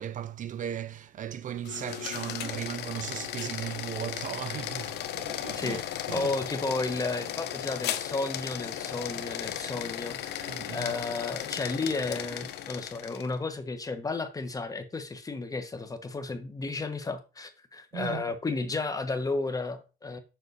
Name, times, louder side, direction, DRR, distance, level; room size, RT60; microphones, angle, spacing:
voice 1, 0.0-5.8 6.1-6.3 10.5-10.9 17.9-18.2, right 10 dB, 50° right, 0.6 m, -37 dB
sound 1, 1.6-13.3, left 11 dB, 80° left, 0.9 m, -36 dB
voice 2, 5.5-5.8 6.1-20.2, left 3 dB, 20° left, 1.1 m, -33 dB
6.9 x 6.0 x 4.1 m
cardioid pair, 110°, 17 cm